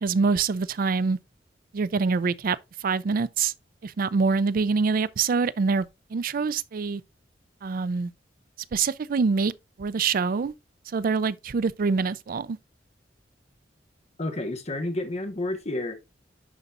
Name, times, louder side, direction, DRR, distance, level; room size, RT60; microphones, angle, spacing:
voice 1, 0.0-1.2 1.7-3.5 3.8-5.9 6.1-7.0 7.6-8.1 8.7-9.5 9.8-10.5 10.9-12.6, right 4 dB, 50° right, 0.4 m, -25 dB
voice 2, 14.2-15.9, left 2 dB, 35° left, 1.3 m, -30 dB
11.0 x 4.0 x 2.5 m
head